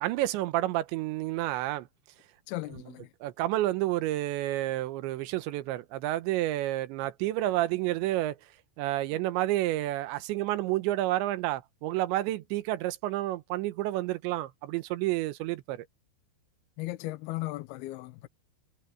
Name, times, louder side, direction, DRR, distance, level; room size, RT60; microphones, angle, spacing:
voice 1, 0.0-1.9 2.7-2.9 3.2-8.4 8.8-15.9, right 15 dB, 85° right, 3.3 m, -30 dB
voice 2, 2.5-3.1 16.8-18.3, left 18 dB, 75° left, 2.5 m, -36 dB
omnidirectional pair, 5.1 m